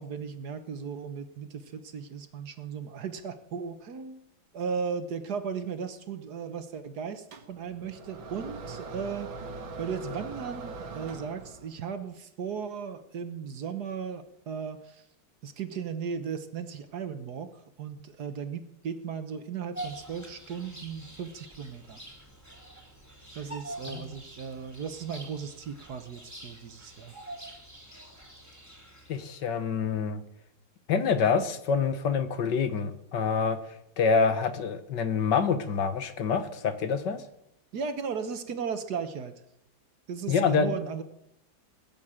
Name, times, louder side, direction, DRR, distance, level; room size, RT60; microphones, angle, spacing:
voice 1, 0.0-4.2 4.5-9.3 9.8-15.0 15.4-22.0 23.3-27.1 37.7-39.3 40.1-41.0, right 6 dB, 60° right, 10 dB, 1.5 m, -36 dB
sound 1, 7.3-11.8, right 4 dB, 80° right, 2.3 m, -41 dB
Bird vocalization bird call bird song, 19.7-29.4, right 1 dB, 10° left, 2.8 m, -45 dB
voice 2, 29.1-30.2 30.9-33.6 34.0-37.2 40.3-40.7, left 5 dB, 65° left, 10 dB, 1.7 m, -26 dB
19.5 x 7.4 x 8.8 m, 0.80 s
omnidirectional pair, 2.1 m